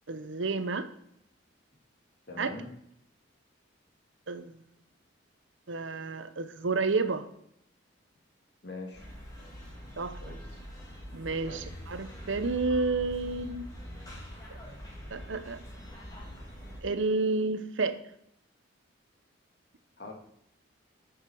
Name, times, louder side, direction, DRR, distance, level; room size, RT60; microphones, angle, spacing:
voice 1, 0.1-0.9 2.4-2.5 4.3-4.6 5.7-7.3 10.0-10.4 11.1-13.7 15.1-15.6 16.8-18.0, right 3 dB, 75° right, 11 dB, 0.8 m, -30 dB
voice 2, 2.3-2.7 8.6-9.1 9.4-9.6 10.2-10.6 11.5-11.7 20.0-20.1, left 2 dB, 55° left, 1 dB, 2.2 m, -43 dB
sound 1, 8.9-16.8, equal, 20° left, 2.7 m, -44 dB
9.0 x 6.5 x 6.2 m, 0.71 s
head